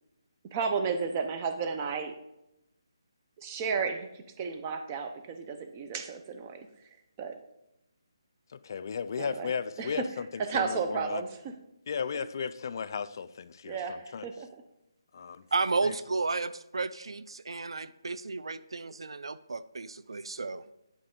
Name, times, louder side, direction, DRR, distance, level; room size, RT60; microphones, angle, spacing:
voice 1, 0.5-2.1 3.4-6.7 7.2-7.4 9.2-9.5 9.8-10.0 10.4-11.5 13.6-14.5, right 5 dB, 25° right, 5 dB, 0.7 m, -33 dB
voice 2, 8.5-11.2 11.9-14.3 15.1-15.4 15.8-15.9, left 6 dB, 45° left, 13 dB, 0.4 m, -35 dB
voice 3, 15.5-20.6, right 3 dB, 85° right, 14 dB, 0.4 m, -32 dB
10.0 x 4.3 x 3.7 m, 0.87 s
hypercardioid pair, 160°, 3 cm